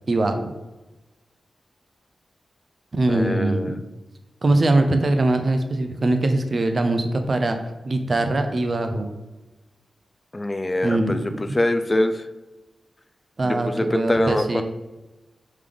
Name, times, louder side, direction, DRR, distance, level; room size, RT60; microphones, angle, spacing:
voice 1, 0.1-0.5 2.9-3.8 4.4-7.6 7.9-9.1 10.8-11.1 11.4-11.5 13.4-14.6, right 2 dB, 45° right, 6 dB, 0.5 m, -22 dB
voice 2, 3.1-3.8 10.3-11.2 11.5-12.2 13.4-14.6, left 1 dB, 25° left, 8 dB, 0.3 m, -23 dB
3.7 x 3.2 x 3.4 m, 1.1 s
wide cardioid pair, 80°, 0 cm